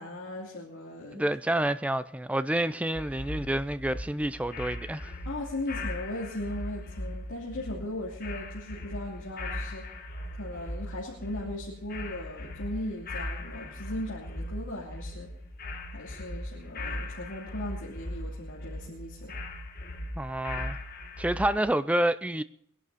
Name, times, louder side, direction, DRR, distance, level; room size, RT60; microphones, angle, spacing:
voice 1, 0.0-1.3 5.2-9.9 10.4-15.3 15.9-19.3, left 1 dB, 60° left, 2.9 m, -38 dB
voice 2, 1.1-5.1 20.2-20.8 21.2-22.4, right 1 dB, 5° right, 0.5 m, -28 dB
sound 1, 2.9-21.6, left 1 dB, 45° left, 1.5 m, -39 dB
22.0 x 11.5 x 4.1 m
head